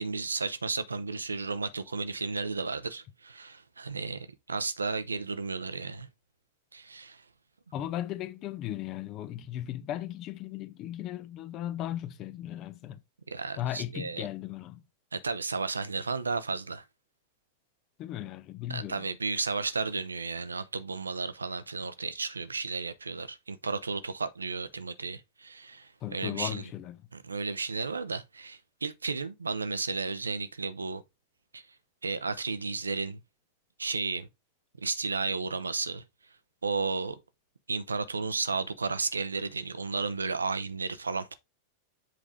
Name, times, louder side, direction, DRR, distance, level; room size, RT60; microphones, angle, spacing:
voice 1, 0.0-6.1 6.7-7.2 13.3-14.3 15.1-16.8 18.7-26.6 27.2-31.0 31.5-31.6 32.0-33.2 33.8-34.3 34.8-36.0 36.6-37.2 37.7-41.3, right 4 dB, 75° right, 0.8 m, -33 dB
voice 2, 7.7-13.0 13.6-14.8 18.0-19.1 26.0-27.0, left 12 dB, 35° left, 0.9 m, -36 dB
7.8 x 4.8 x 3.6 m
figure-of-eight pair, 90°, 0 cm